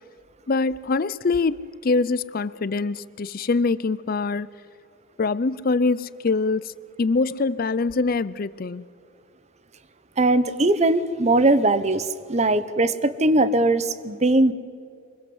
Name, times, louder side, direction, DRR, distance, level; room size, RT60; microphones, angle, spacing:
voice 1, 0.5-4.5 5.2-6.6 7.0-8.8, left 3 dB, 45° left, 0.5 m, -24 dB
voice 2, 10.2-14.5, right 2 dB, 35° right, 0.9 m, -20 dB
24.5 x 22.0 x 7.9 m
head